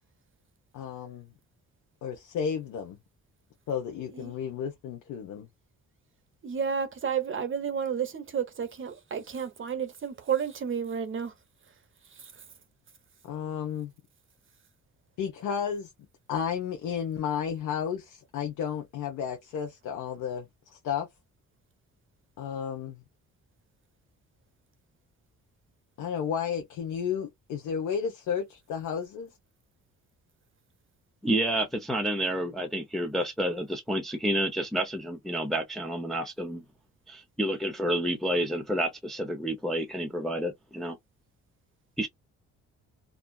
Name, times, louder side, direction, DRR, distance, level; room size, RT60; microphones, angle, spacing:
voice 1, 0.7-1.3 2.0-3.0 3.7-5.5 13.2-13.9 15.2-15.9 16.3-21.1 22.4-23.0 26.0-29.3, left 7 dB, 85° left, 0.8 m, -32 dB
voice 2, 6.4-11.3 12.2-12.3, right 7 dB, 40° right, 0.8 m, -31 dB
voice 3, 31.2-36.6 37.1-41.0 42.0-42.1, right 1 dB, ahead, 0.6 m, -29 dB
2.6 x 2.3 x 2.2 m
cardioid pair, 90°, 30 cm